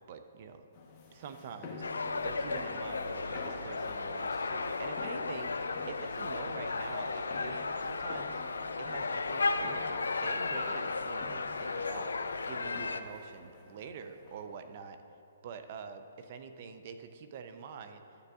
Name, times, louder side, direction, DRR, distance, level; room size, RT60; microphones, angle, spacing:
voice 1, 0.1-0.7 1.1-8.4 8.8-12.1 12.5-15.0 15.4-18.0, right 6 dB, 50° right, 8 dB, 0.5 m, -46 dB
sound 1, 0.7-14.6, left 3 dB, 30° left, 1.0 m, -49 dB
sound 2, 1.8-13.0, left 3 dB, 90° left, 0.4 m, -34 dB
11.0 x 6.7 x 2.4 m, 2.7 s
hypercardioid pair, 140°, 0 cm